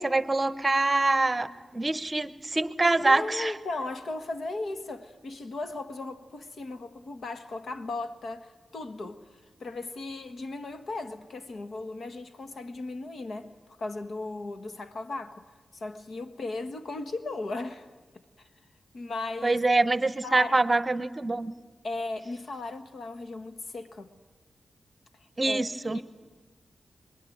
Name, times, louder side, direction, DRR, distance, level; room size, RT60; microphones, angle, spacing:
voice 1, 0.0-3.5 19.4-21.5 25.4-26.0, right 2 dB, 25° right, 1.0 m, -25 dB
voice 2, 3.0-9.2 9.6-13.5 13.8-15.4 15.7-17.9 18.1-18.5 18.9-19.6 20.2-20.6 21.8-24.1 25.4-25.6 25.9-26.0, left 2 dB, 70° left, 1.5 m, -36 dB
27.5 x 22.5 x 9.4 m
wide cardioid pair, 95°, 0 cm